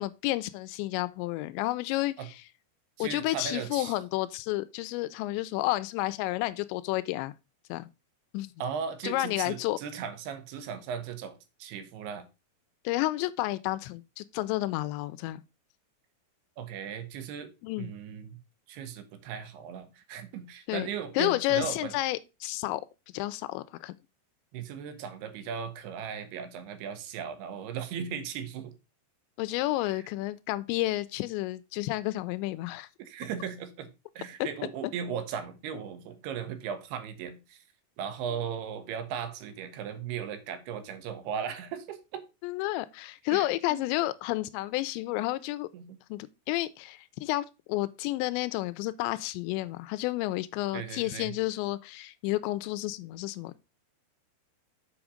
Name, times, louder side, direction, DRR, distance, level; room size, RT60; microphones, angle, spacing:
voice 1, 0.0-2.4 3.0-7.3 7.7-7.9 8.3-8.5 9.0-9.8 12.9-15.4 17.6-17.9 20.7-20.9 21.2-22.9 23.1-23.9 29.4-32.9 34.4-34.5 42.4-45.7 46.1-53.6, left 17 dB, 90° left, 2.9 m, -31 dB
voice 2, 3.0-4.0 8.6-12.3 16.6-17.5 17.8-18.4 18.7-21.9 24.5-28.7 29.8-30.0 33.0-33.9 34.2-37.6 38.0-42.2 43.3-43.8 45.7-46.0 50.7-51.3, right 7 dB, 75° right, 2.8 m, -37 dB
7.2 x 5.7 x 4.9 m
omnidirectional pair, 5.1 m